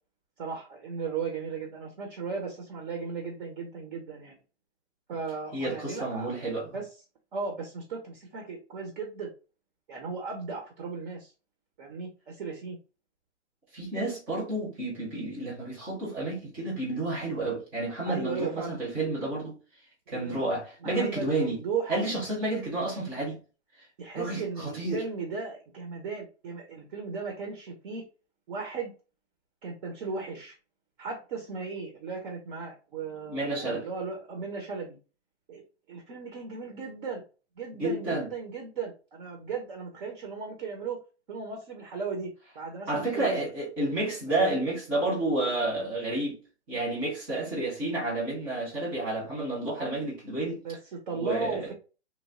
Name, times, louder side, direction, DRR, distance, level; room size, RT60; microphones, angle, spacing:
voice 1, 0.4-4.3 5.1-6.3 6.7-6.9 7.3-9.3 9.9-11.3 11.8-12.8 18.1-18.8 20.1-20.5 20.8-22.0 24.0-28.0 28.5-28.9 29.6-30.5 31.0-35.0 35.5-35.6 35.9-37.2 37.6-41.0 41.3-43.5 44.3-44.6 50.6-51.7, right 5 dB, 45° right, 1.0 m, -36 dB
voice 2, 5.5-6.7 13.7-19.6 20.1-21.6 21.9-23.4 24.2-25.0 33.3-33.9 37.8-38.3 42.9-46.3 46.7-50.6 51.1-51.7, right 2 dB, 5° right, 0.3 m, -30 dB
3.2 x 2.2 x 3.6 m
hypercardioid pair, 135°, 35 cm